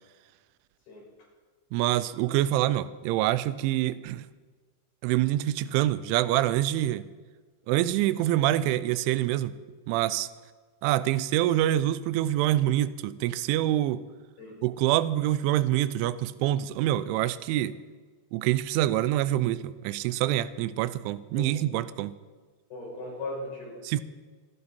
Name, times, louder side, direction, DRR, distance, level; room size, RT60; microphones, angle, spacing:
voice 1, 1.7-4.3 5.0-7.0 7.7-9.6 9.9-10.3 10.8-14.0 14.6-17.8 18.3-22.2 23.8-24.0, right 14 dB, 85° right, 15 dB, 3.0 m, -26 dB
voice 2, 22.7-23.8, left 2 dB, 55° left, -4 dB, 7.6 m, -37 dB
26.0 x 11.0 x 4.3 m, 1.4 s
omnidirectional pair, 5.5 m